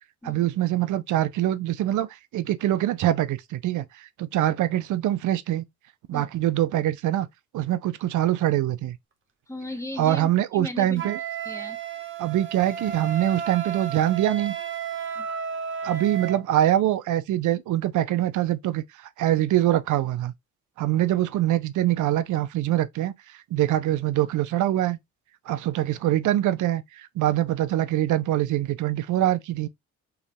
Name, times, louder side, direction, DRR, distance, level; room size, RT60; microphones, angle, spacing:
voice 1, 0.2-5.6 6.1-7.3 7.5-9.0 10.0-11.2 12.2-14.6 15.8-18.8 19.2-20.3 20.8-25.0 25.5-29.7, right 13 dB, 75° right, 0.7 m, -24 dB
voice 2, 9.5-11.1 11.4-11.8 15.1-15.3, left 1 dB, 10° left, 1.6 m, -36 dB
Wind instrument woodwind instrument, 11.0-16.4, right 7 dB, 40° right, 1.2 m, -33 dB
4.7 x 3.2 x 3.4 m
cardioid pair, 90°, 30 cm